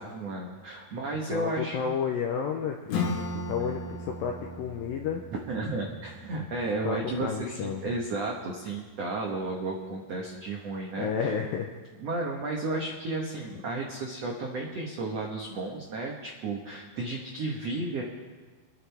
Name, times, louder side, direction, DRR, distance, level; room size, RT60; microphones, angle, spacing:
voice 1, 0.0-1.9 5.5-11.1 12.0-18.0, right 2 dB, 85° right, -1 dB, 1.4 m, -33 dB
voice 2, 1.1-5.2 6.8-8.0 11.0-11.7 13.5-13.6, left 7 dB, 85° left, 2 dB, 2.1 m, -32 dB
Acoustic guitar / Strum, 2.9-8.1, left 2 dB, 70° left, 3.1 m, -37 dB
26.0 x 9.8 x 3.5 m, 1.4 s
omnidirectional pair, 5.0 m